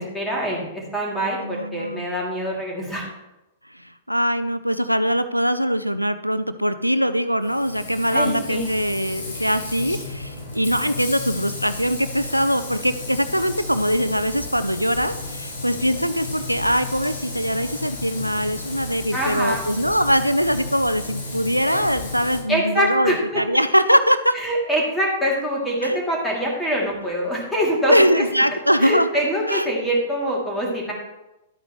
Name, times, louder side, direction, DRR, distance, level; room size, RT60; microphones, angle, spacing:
voice 1, 0.0-3.1 8.1-8.7 19.1-19.6 22.5-23.4 24.3-28.2 28.8-30.9, equal, 5° left, -3 dB, 2.9 m, -24 dB
voice 2, 1.3-2.1 3.7-24.3 25.8-26.0 27.9-29.1 29.5-29.7, equal, 90° right, 12 dB, 0.4 m, -22 dB
Frying (food), 7.4-22.4, left 3 dB, 65° left, 2.6 m, -33 dB
12.0 x 9.0 x 3.2 m, 0.96 s
figure-of-eight pair, 105°, 0 cm